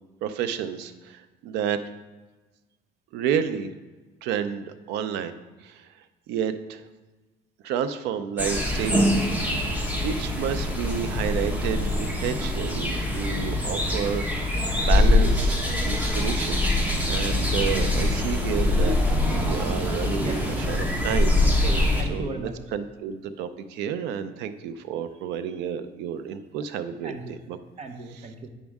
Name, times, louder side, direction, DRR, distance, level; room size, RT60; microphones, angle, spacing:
voice 1, 0.2-1.8 3.1-3.7 4.2-5.9 6.3-6.8 7.6-9.1 10.0-14.5 14.8-15.6 15.8-16.6 17.0-21.4 22.1-27.6, right 8 dB, 90° right, 11 dB, 0.6 m, -30 dB
sound 1, 8.4-22.0, left 1 dB, 10° right, 1.4 m, -24 dB
voice 2, 20.2-20.5 21.4-22.5 27.0-27.3 27.8-28.5, right 3 dB, 40° right, 6 dB, 1.0 m, -38 dB
8.4 x 6.2 x 3.5 m, 1.2 s
cardioid pair, 110°, 17 cm